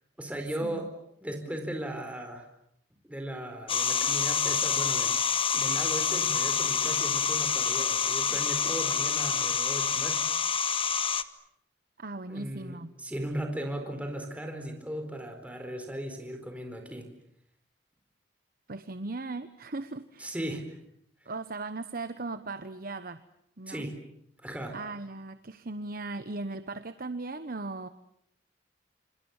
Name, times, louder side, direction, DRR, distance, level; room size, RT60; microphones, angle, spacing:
voice 1, 0.2-0.9 1.2-2.4 3.1-5.1 5.5-10.2 12.3-17.1 20.2-20.8 23.7-24.0 24.4-24.8, right 1 dB, 10° right, 4 dB, 4.3 m, -37 dB
sound 1, 3.7-11.2, left 7 dB, 30° left, 1.2 m, -27 dB
voice 2, 12.0-12.9 18.7-20.3 21.2-23.2 23.6-23.9 24.7-27.9, right 3 dB, 55° right, 11 dB, 1.1 m, -38 dB
28.5 x 28.0 x 7.3 m, 0.72 s
head